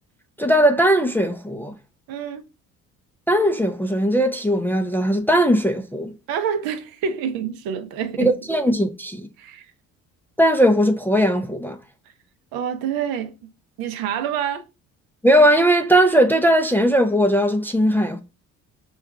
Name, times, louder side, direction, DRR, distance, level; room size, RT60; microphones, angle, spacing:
voice 1, 0.4-1.7 3.3-6.1 8.2-9.3 10.4-11.8 15.2-18.2, equal, 5° left, 0.4 m, -18 dB
voice 2, 2.1-2.5 6.3-8.3 9.4-9.7 12.5-13.3 13.8-14.6, right 8 dB, 70° right, 0.6 m, -27 dB
5.2 x 2.4 x 2.3 m
hypercardioid pair, 60°, 37 cm